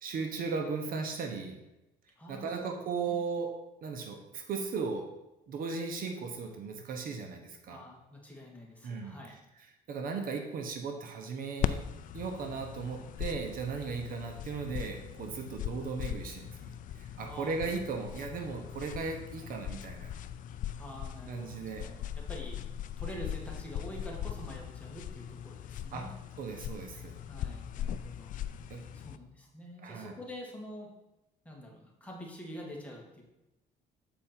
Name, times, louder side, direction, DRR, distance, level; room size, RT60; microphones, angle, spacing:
voice 1, 0.0-1.6 2.3-3.5 3.8-5.1 5.5-7.8 8.8-9.2 9.9-11.8 12.1-20.1 21.3-21.9 25.9-26.1 26.4-27.2 28.7-28.8 29.8-30.1, right 4 dB, 55° right, 4 dB, 1.0 m, -37 dB
voice 2, 2.2-2.7 3.1-3.2 7.7-9.4 17.2-17.7 20.7-22.6 23.0-26.1 27.3-28.3 28.7-30.9 31.4-33.2, equal, 10° left, -2 dB, 1.9 m, -46 dB
sound 1, 11.6-29.2, left 10 dB, 50° left, 0.4 m, -40 dB
7.5 x 4.9 x 4.4 m, 0.96 s
cardioid pair, 110°, 17 cm